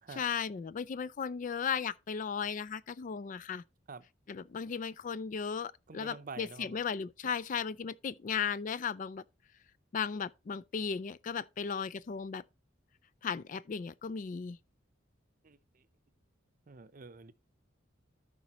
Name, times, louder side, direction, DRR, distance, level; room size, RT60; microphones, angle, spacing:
voice 1, 0.2-3.6 4.3-9.2 9.9-12.4 13.2-14.6, left 6 dB, 40° left, 0.3 m, -36 dB
voice 2, 5.9-6.8 15.4-15.8 16.7-17.3, right 4 dB, 45° right, 0.6 m, -48 dB
13.5 x 5.2 x 2.9 m
head